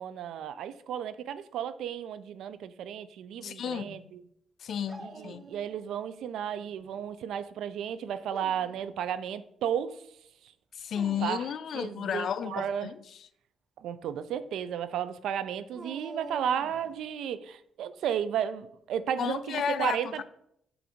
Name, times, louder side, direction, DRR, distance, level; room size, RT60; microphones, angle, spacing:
voice 1, 0.0-4.2 5.0-10.1 11.2-11.5 11.7-12.9 13.8-20.2, right 9 dB, 80° right, 0.4 m, -33 dB
voice 2, 3.4-4.1 4.6-5.4 10.7-13.0 19.2-20.2, left 8 dB, 60° left, 0.4 m, -33 dB
Dog, 4.9-6.0 6.4-7.1 8.1-8.9 10.8-11.5 15.7-17.1, right 2 dB, 25° right, 0.6 m, -46 dB
7.6 x 2.6 x 5.0 m
cardioid pair, 90°, 0 cm